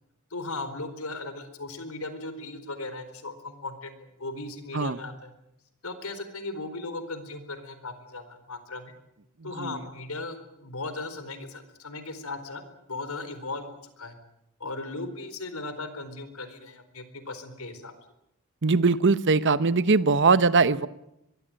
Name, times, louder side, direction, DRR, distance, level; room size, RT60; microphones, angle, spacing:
voice 1, 0.3-5.3 5.8-8.9 9.4-12.6 12.9-14.2 14.6-17.9, left 2 dB, 80° left, 11 dB, 4.3 m, -37 dB
voice 2, 18.6-20.9, right 4 dB, 55° right, 15 dB, 1.0 m, -21 dB
23.5 x 23.0 x 9.0 m, 0.82 s
head